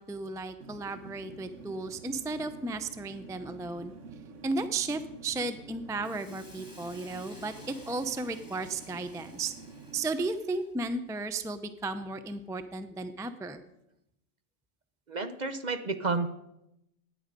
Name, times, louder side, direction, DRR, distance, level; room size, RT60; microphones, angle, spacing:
voice 1, 0.0-3.9 4.4-9.5 9.9-13.6, right 3 dB, 5° right, 10 dB, 0.5 m, -34 dB
sound 1, 0.6-10.1, right 4 dB, 85° right, 1.4 m, -48 dB
Hiss, 6.0-10.8, left 1 dB, 15° left, 3.2 m, -55 dB
voice 2, 15.1-16.3, right 3 dB, 40° right, 9 dB, 0.8 m, -31 dB
16.0 x 10.0 x 5.2 m, 0.85 s
omnidirectional pair, 1.2 m